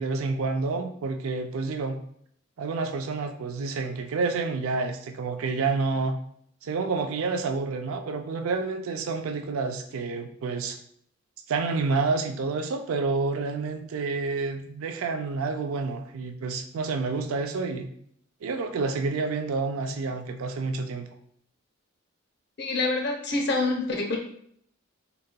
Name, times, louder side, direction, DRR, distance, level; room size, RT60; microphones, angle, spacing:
voice 1, 0.0-2.0 2.6-6.1 6.6-10.8 11.5-17.9 18.4-21.1, right 4 dB, 80° right, 6 dB, 0.4 m, -29 dB
voice 2, 22.6-24.2, left 3 dB, 50° left, 1 dB, 0.6 m, -26 dB
3.8 x 2.7 x 2.2 m, 0.67 s
head